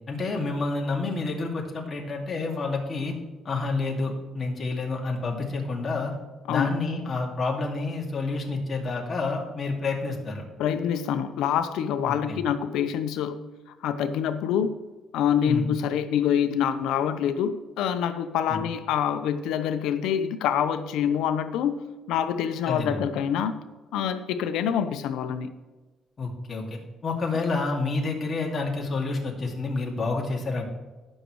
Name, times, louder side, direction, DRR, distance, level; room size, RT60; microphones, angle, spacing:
voice 1, 0.1-3.1 3.4-6.1 6.5-10.4 12.1-12.4 15.4-15.7 18.5-18.6 22.7-23.0 26.2-30.6, left 3 dB, 30° left, -1 dB, 2.3 m, -29 dB
voice 2, 10.6-13.4 13.8-14.7 15.1-23.6 23.9-25.5, left 8 dB, 85° left, 9 dB, 0.8 m, -26 dB
18.5 x 6.5 x 3.2 m, 1.2 s
cardioid pair, 130°, 0 cm